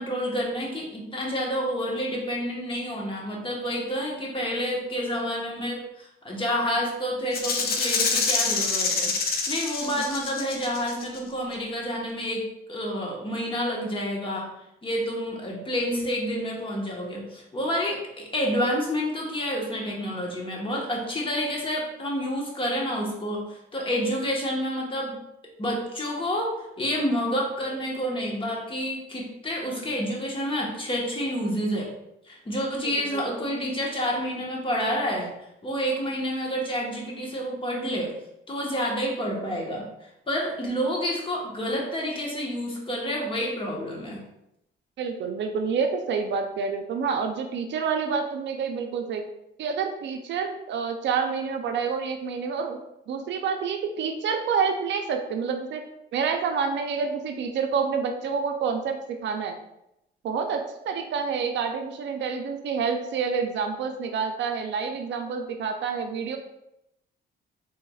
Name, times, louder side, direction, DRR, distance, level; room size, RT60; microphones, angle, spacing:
voice 1, 0.0-14.5 14.8-25.1 25.6-31.9 32.3-35.3 35.6-38.1 38.5-39.9 40.3-44.2, equal, 25° left, -2 dB, 1.2 m, -29 dB
Rattle (instrument), 7.3-11.2, left 4 dB, 50° left, 0.6 m, -26 dB
voice 2, 32.8-33.2 45.0-49.2 49.6-52.8 53.1-55.8 56.1-59.0 59.2-59.6 60.2-66.4, right 5 dB, 65° right, 5 dB, 0.5 m, -28 dB
4.6 x 3.4 x 2.3 m, 0.84 s
cardioid pair, 90°, 20 cm